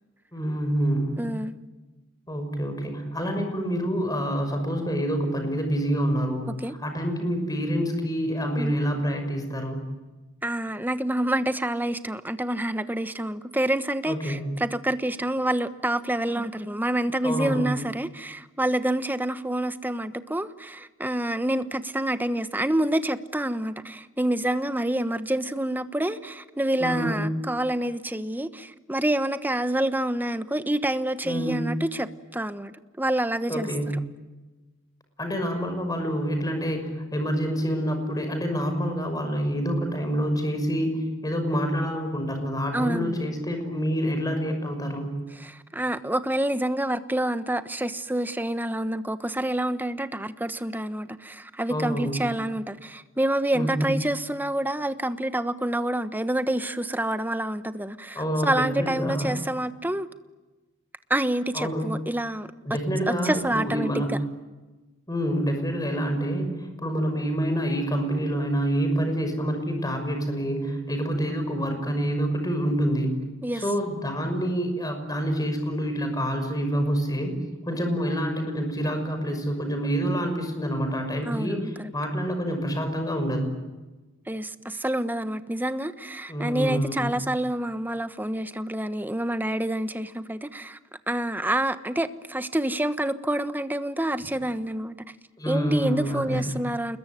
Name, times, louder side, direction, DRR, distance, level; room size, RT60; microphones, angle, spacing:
voice 1, 0.3-1.2 2.3-6.5 6.8-9.8 14.0-14.5 17.2-17.6 26.8-27.3 31.2-31.7 33.5-33.9 35.2-45.1 51.7-52.2 53.5-53.9 58.1-59.3 61.5-61.8 62.6-64.1 65.1-73.2 73.5-77.4 77.7-83.5 86.3-87.2 95.4-96.6, equal, 20° left, 6.1 m, -27 dB
voice 2, 1.2-1.6 6.6-6.7 8.6-8.7 10.4-32.7 33.0-33.7 42.7-43.2 45.3-60.1 61.1-62.5 63.1-64.2 73.4-73.6 81.2-81.9 84.3-90.8 91.1-94.9 95.5-97.0, right 1 dB, 10° right, 1.2 m, -27 dB
29.5 x 21.5 x 9.3 m
head